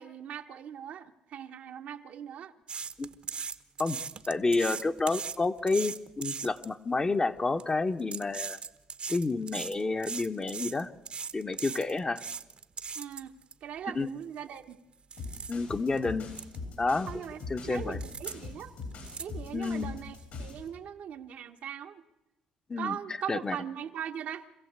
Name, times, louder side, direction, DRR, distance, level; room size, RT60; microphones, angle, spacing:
voice 1, 0.0-2.5 12.9-13.3 13.6-14.8 17.1-18.7 19.2-22.0 22.8-24.4, right 9 dB, 70° right, 5 dB, 1.3 m, -40 dB
sound 1, 2.7-6.7 7.4-7.6 8.0-13.5 14.0-14.1 14.6-14.7 15.1-15.5 16.0-16.1 16.3-16.6 16.8-17.4 18.0-18.3 18.6-19.8 20.2-20.3, right 6 dB, 45° right, 1.1 m, -39 dB
voice 2, 4.3-8.6 9.1-10.9 11.3-12.2 13.9-14.1 15.5-16.3 16.8-17.1 17.5-18.0 19.5-19.9 22.7-23.0 23.3-23.6, left 3 dB, 30° left, 6 dB, 1.3 m, -29 dB
sound 2, 15.2-20.6, left 3 dB, 70° left, 7.7 m, -41 dB
25.5 x 15.5 x 8.2 m, 1.0 s
supercardioid pair, 65°, 3 cm